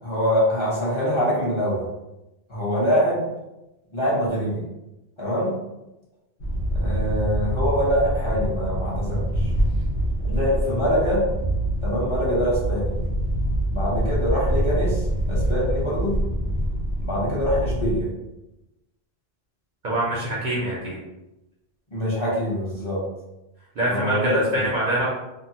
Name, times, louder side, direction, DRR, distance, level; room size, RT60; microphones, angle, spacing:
voice 1, 0.0-1.8 2.5-3.2 3.9-4.6 5.2-5.5 6.8-9.5 10.2-11.2 11.8-12.9 13.7-15.0 15.3-16.1 17.0-18.1 21.9-23.0 23.9-24.6, equal, 25° left, -7 dB, 0.9 m, -24 dB
sound 1, 6.4-18.0, right 1 dB, 70° left, 1.0 m, -25 dB
voice 2, 19.8-21.0 23.8-25.1, right 1 dB, 50° right, -5 dB, 0.6 m, -24 dB
2.7 x 2.5 x 2.7 m, 0.96 s
omnidirectional pair, 1.2 m